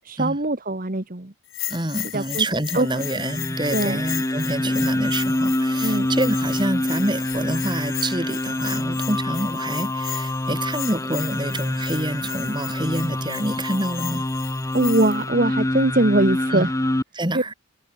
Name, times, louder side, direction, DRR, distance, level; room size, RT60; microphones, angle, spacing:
voice 1, 0.0-1.3 2.1-2.4 2.7-3.0 3.7-4.0 5.8-6.1 14.7-16.7 17.3-17.4, right 2 dB, 40° right, 1.5 m, -22 dB
Bell, 1.5-15.2, left 15 dB, 65° left, 7.1 m, -36 dB
voice 2, 1.7-14.3 16.5-16.7 17.1-17.5, right 1 dB, 20° right, 2.6 m, -27 dB
sound 1, 2.7-17.0, left 1 dB, 15° left, 0.8 m, -26 dB
head